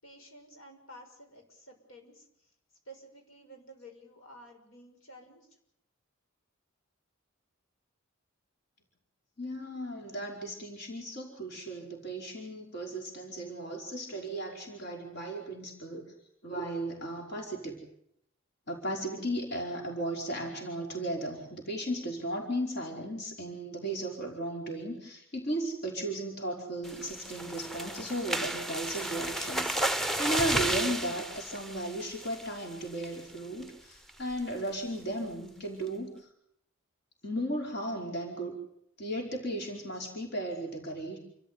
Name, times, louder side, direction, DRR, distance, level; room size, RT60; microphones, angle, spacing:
voice 1, 0.0-2.3 2.9-5.4, equal, 85° left, 3 dB, 6.4 m, -52 dB
voice 2, 9.4-16.1 16.4-17.8 18.7-36.3 37.2-38.5 39.0-41.2, right 1 dB, 55° left, 1 dB, 4.9 m, -35 dB
sound 1, 26.8-32.6 33.0-33.3 33.6-33.7 34.1-34.4, right 1 dB, ahead, 0.9 m, -33 dB
29.0 x 14.0 x 9.7 m, 0.73 s
head